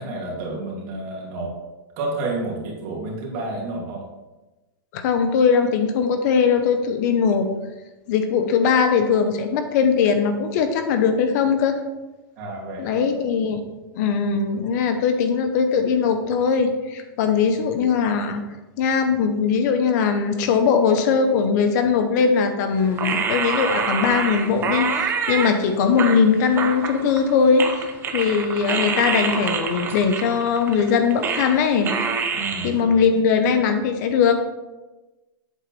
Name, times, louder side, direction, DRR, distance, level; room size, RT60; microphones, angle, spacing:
voice 1, 0.0-1.5 2.0-4.0 12.4-13.0 32.3-33.0, right 2 dB, 45° right, -2 dB, 2.5 m, -30 dB
voice 2, 4.9-7.5 8.1-11.8 12.8-13.6 13.9-18.4 18.8-32.3 32.6-34.4, left 6 dB, 50° left, 7 dB, 0.9 m, -20 dB
sound 1, 23.0-25.5 26.0-27.3 27.6-31.6 31.8-32.7, right 5 dB, 20° right, 0.7 m, -26 dB
8.2 x 4.0 x 6.0 m, 1.1 s
supercardioid pair, 155°, 12 cm